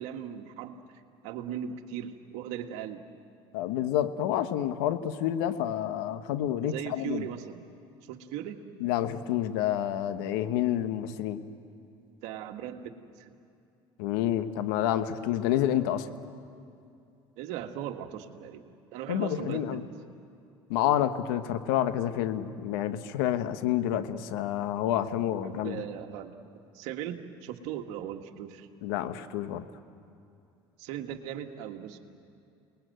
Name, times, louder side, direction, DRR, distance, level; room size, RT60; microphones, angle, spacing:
voice 1, 0.0-3.0 6.6-7.6 8.0-8.6 12.2-13.3 17.4-19.8 25.4-26.3 26.7-28.7 30.8-32.0, right 10 dB, 75° right, 5 dB, 1.8 m, -38 dB
voice 2, 3.5-7.3 8.8-11.4 14.0-16.1 19.1-19.8 20.7-25.8 28.8-29.6, left 11 dB, 85° left, 11 dB, 1.1 m, -29 dB
29.0 x 20.5 x 7.9 m, 2.6 s
supercardioid pair, 90°, 12 cm